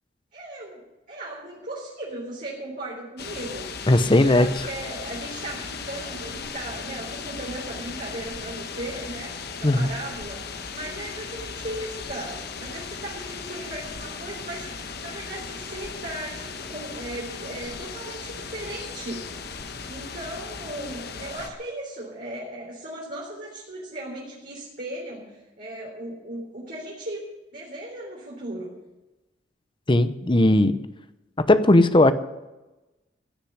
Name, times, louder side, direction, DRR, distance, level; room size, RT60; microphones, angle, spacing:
voice 1, 0.3-0.8 1.1-3.7 4.1-10.4 10.7-19.3 19.9-27.2 27.5-28.7, right 1 dB, 50° right, -5 dB, 3.6 m, -37 dB
sound 1, 3.2-21.5, left 5 dB, 60° left, 1.2 m, -37 dB
voice 2, 3.9-4.7 9.6-9.9 29.9-30.8 31.4-32.1, left 1 dB, 25° left, 12 dB, 0.8 m, -18 dB
16.0 x 6.8 x 9.7 m, 1.0 s
head